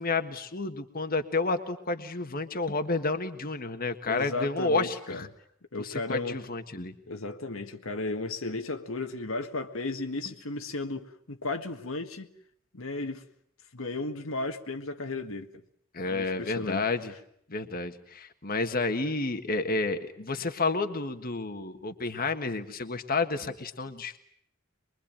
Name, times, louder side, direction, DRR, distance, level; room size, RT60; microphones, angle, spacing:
voice 1, 0.0-5.3 5.8-6.9 15.9-17.1 17.5-24.2, left 3 dB, 45° left, 1.6 m, -30 dB
voice 2, 4.1-5.3 5.7-6.4 7.1-12.3 12.7-13.2 13.7-15.5 16.0-16.8, left 2 dB, 85° left, 1.8 m, -34 dB
24.0 x 23.0 x 8.8 m
head